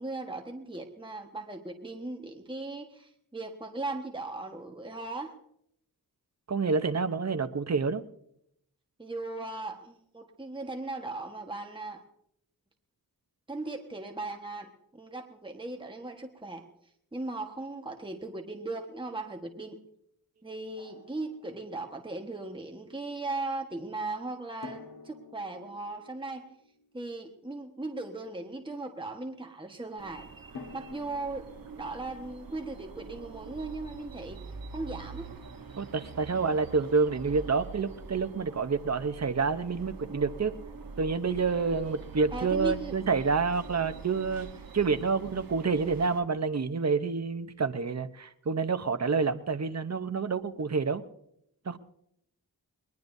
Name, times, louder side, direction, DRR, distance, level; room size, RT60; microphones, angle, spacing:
voice 1, 0.0-5.3 9.0-12.0 13.5-16.7 17.1-19.8 20.4-26.5 26.9-30.3 30.7-31.5 31.8-34.4 34.7-35.3 42.3-43.0, right 2 dB, 15° right, 3 dB, 1.4 m, -38 dB
voice 2, 6.5-8.0 35.8-40.5 41.0-44.5 44.7-51.0 51.7-51.8, right 4 dB, 45° right, 10 dB, 0.9 m, -28 dB
Drum, 20.8-22.1 24.6-27.6 30.6-33.4, left 4 dB, 80° left, 1.8 m, -51 dB
sound 1, 30.0-46.2, right 4 dB, 65° right, 1.3 m, -45 dB
21.5 x 20.5 x 2.7 m, 0.75 s
wide cardioid pair, 85°, 37 cm